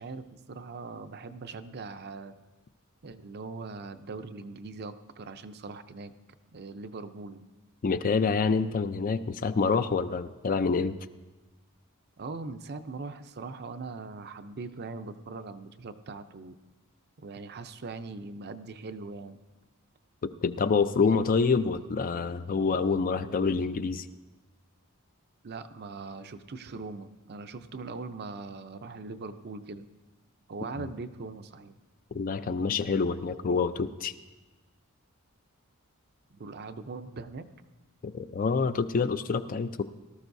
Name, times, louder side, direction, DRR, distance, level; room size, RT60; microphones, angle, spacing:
voice 1, 0.0-2.3 3.0-6.1 6.5-7.4 12.2-16.6 17.2-19.4 25.4-29.8 30.5-31.7 36.3-37.5, right 3 dB, 50° right, 10 dB, 0.6 m, -41 dB
voice 2, 7.8-10.9 20.2-24.1 32.1-34.1 38.0-39.8, left 5 dB, 40° left, 11 dB, 0.4 m, -27 dB
18.0 x 13.0 x 2.7 m, 1.2 s
head